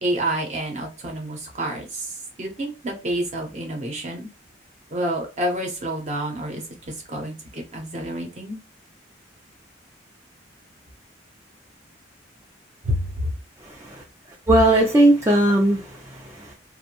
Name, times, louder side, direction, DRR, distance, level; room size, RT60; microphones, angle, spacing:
voice 1, 0.0-4.3 4.9-8.6 12.8-13.3, right 1 dB, 35° right, 0.7 m, -28 dB
voice 2, 13.6-14.0 14.5-16.5, right 1 dB, 15° right, 0.3 m, -19 dB
2.5 x 2.1 x 2.8 m
head